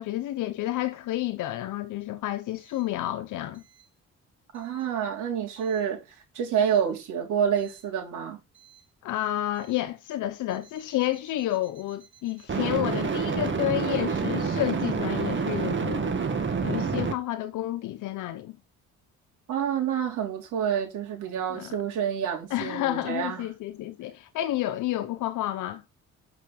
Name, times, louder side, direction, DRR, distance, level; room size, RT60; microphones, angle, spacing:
voice 1, 0.0-3.6 9.0-16.1 16.6-18.6 21.5-21.7 22.5-25.8, left 14 dB, 85° left, 0.9 m, -30 dB
voice 2, 4.5-6.0 6.3-8.4 19.5-23.5, right 8 dB, 90° right, 3.8 m, -28 dB
sound 1, 7.6-7.8 12.5-17.1, right 5 dB, 40° right, 2.1 m, -28 dB
8.4 x 5.9 x 4.2 m
cardioid pair, 90°, 30 cm